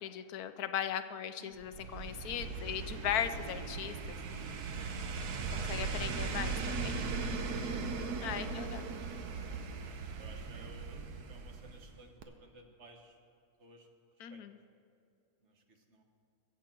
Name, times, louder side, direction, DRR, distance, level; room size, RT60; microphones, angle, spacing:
voice 1, 0.0-4.2 5.5-7.0 8.2-8.8 14.2-14.6, left 9 dB, 80° left, 11 dB, 1.1 m, -38 dB
sound 1, 1.6-12.0 12.2-12.3, right 4 dB, 90° right, 1.4 m, -38 dB
voice 2, 7.8-8.6 10.2-11.0 11.3-13.2 13.6-13.9 14.3-14.4 15.4-16.0, right 2 dB, 50° right, 3 dB, 1.5 m, -57 dB
21.5 x 8.2 x 4.5 m, 2.5 s
omnidirectional pair, 1.6 m